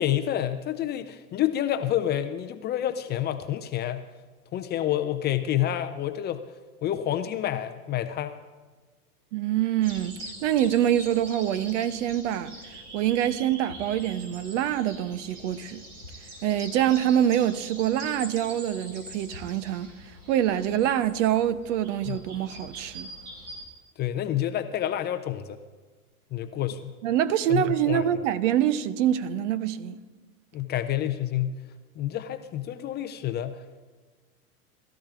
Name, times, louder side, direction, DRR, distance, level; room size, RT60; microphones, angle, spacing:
voice 1, 0.0-4.0 4.5-6.4 6.8-8.3 22.1-22.2 24.0-25.6 26.3-26.9 27.5-28.3 30.5-31.5 32.0-33.6, left 11 dB, 25° left, 0.5 m, -28 dB
voice 2, 9.3-12.6 12.9-15.8 16.4-19.9 20.3-23.1 27.0-30.0, right 11 dB, 55° right, 0.8 m, -25 dB
sound 1, 9.8-23.6, right 1 dB, 85° right, 3.0 m, -44 dB
21.0 x 13.5 x 2.5 m
hypercardioid pair, 100°, 45 cm